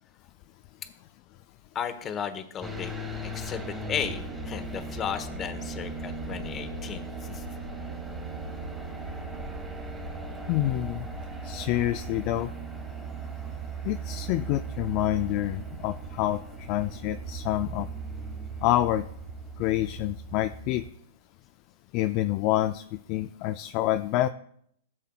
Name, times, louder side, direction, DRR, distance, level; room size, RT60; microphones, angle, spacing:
voice 1, 1.7-7.4, left 8 dB, 25° left, 9 dB, 1.0 m, -35 dB
sound 1, 2.6-20.9, right 3 dB, 10° right, 2.2 m, -37 dB
voice 2, 10.5-11.1 11.4-12.5 13.8-17.9 18.6-19.1 19.6-20.8 21.9-24.3, left 15 dB, 45° left, 9 dB, 0.3 m, -27 dB
15.0 x 7.3 x 2.3 m, 0.68 s
hypercardioid pair, 120°, 0 cm